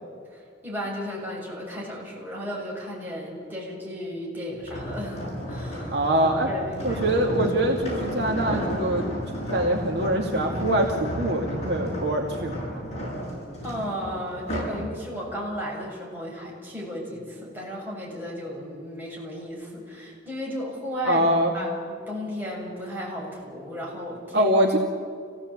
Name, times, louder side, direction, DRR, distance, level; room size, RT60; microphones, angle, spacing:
voice 1, 0.3-6.0 6.5-7.0 13.6-21.3 21.5-24.5, equal, 10° right, -4 dB, 7.2 m, -34 dB
sound 1, 4.6-14.8 15.3-15.5, equal, 35° left, 7.8 m, -32 dB
voice 2, 5.9-6.5 6.8-12.8 21.0-21.5 24.3-24.8, right 1 dB, 60° right, 1 dB, 2.3 m, -24 dB
26.5 x 16.5 x 8.6 m, 2.1 s
head